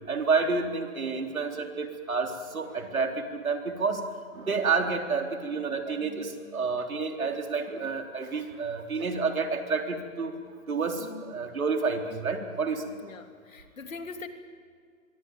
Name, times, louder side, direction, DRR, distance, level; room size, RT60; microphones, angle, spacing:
voice 1, 0.1-4.0 4.3-10.3 10.7-12.9, right 4 dB, 75° right, 4 dB, 4.1 m, -29 dB
voice 2, 11.0-11.4 13.0-14.3, left 4 dB, 65° left, 7 dB, 3.3 m, -42 dB
26.5 x 23.5 x 9.4 m, 2.1 s
hypercardioid pair, 175°, 42 cm